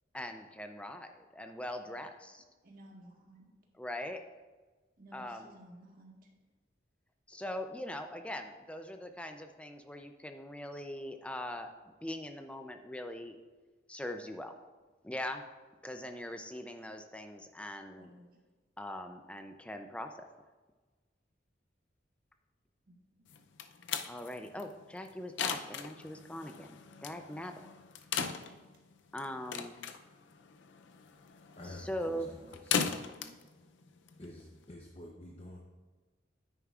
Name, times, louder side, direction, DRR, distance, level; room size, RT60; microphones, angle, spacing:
voice 1, 0.1-2.4 3.8-4.2 5.1-5.5 7.3-11.7 12.0-13.4 13.9-14.5 15.0-15.4 15.8-18.1 18.8-20.1 24.1-26.7 27.0-27.5 29.1-29.9 31.9-32.3, left 1 dB, 5° left, 6 dB, 0.4 m, -41 dB
voice 2, 2.6-3.5 5.0-6.3 18.0-18.4 22.9-23.2 32.1-32.6 33.1-33.6, right 1 dB, 50° right, -1 dB, 1.5 m, -56 dB
sound 1, 23.3-34.7, left 7 dB, 80° left, 0.5 m, -39 dB
voice 3, 31.6-33.2 34.2-35.6, left 1 dB, 35° left, -1 dB, 0.7 m, -49 dB
9.3 x 9.2 x 2.4 m, 1.3 s
head